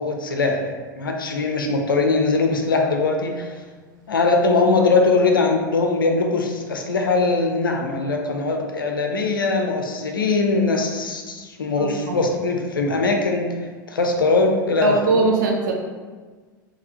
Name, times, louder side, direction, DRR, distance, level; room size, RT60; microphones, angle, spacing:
voice 1, 0.0-3.5 4.1-13.5 13.9-15.3, left 3 dB, 85° left, 3 dB, 0.5 m, -21 dB
voice 2, 11.8-12.2 14.8-15.7, right 3 dB, 65° right, 1 dB, 0.5 m, -20 dB
3.9 x 2.9 x 2.8 m, 1.4 s
hypercardioid pair, 85°, 11 cm